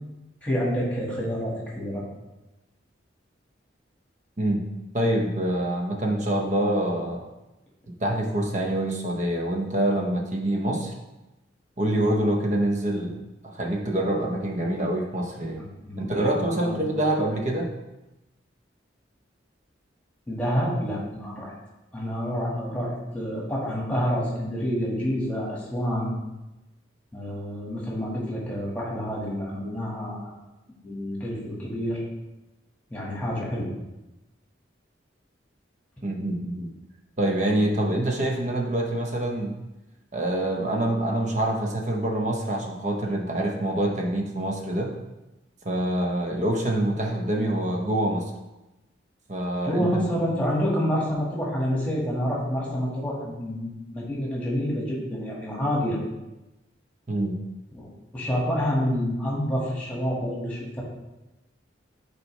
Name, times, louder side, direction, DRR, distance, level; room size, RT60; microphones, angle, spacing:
voice 1, 0.4-2.0 15.6-16.9 20.3-21.5 21.9-26.1 27.1-30.3 30.8-32.0 32.9-33.7 49.6-56.0 57.7-60.8, equal, 10° left, -4 dB, 1.7 m, -28 dB
voice 2, 4.9-7.2 7.9-10.9 11.8-13.2 13.4-15.7 16.0-17.7 36.0-36.7 37.2-39.5 40.1-44.9 45.6-48.2 49.3-50.0 57.1-57.4, right 1 dB, 40° right, 1 dB, 0.7 m, -26 dB
9.4 x 4.4 x 3.2 m, 1.0 s
head